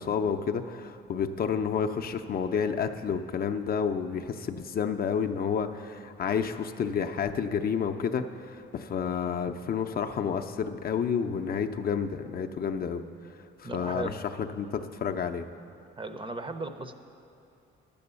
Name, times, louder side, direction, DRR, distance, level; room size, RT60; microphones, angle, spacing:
voice 1, 0.0-13.0 13.6-15.5, left 7 dB, 50° left, 5 dB, 0.5 m, -30 dB
voice 2, 13.6-14.2 16.0-16.9, right 2 dB, 25° right, 8 dB, 0.6 m, -36 dB
10.0 x 7.0 x 6.8 m, 2.6 s
cardioid pair, 90°, 20 cm